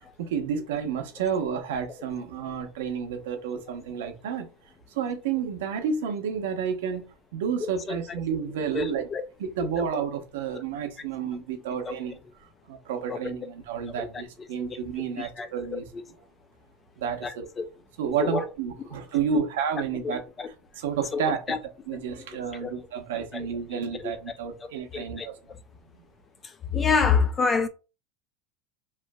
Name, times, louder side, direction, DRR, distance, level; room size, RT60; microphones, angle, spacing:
voice 1, 0.2-4.5 4.9-7.0 7.3-9.1 9.4-12.2 12.7-15.9 17.0-17.4 18.0-21.4 21.9-25.4, right 7 dB, 85° right, 0.7 m, -30 dB
voice 2, 8.7-9.2 13.1-13.2 15.2-15.5 15.7-15.8 17.2-17.3 17.6-17.7 18.2-18.3 20.0-20.5 21.1-21.2 21.5-21.6 22.6-22.7 24.9-25.3 26.7-27.7, left 5 dB, 20° left, 0.3 m, -25 dB
3.0 x 2.4 x 2.2 m
supercardioid pair, 150°, 0 cm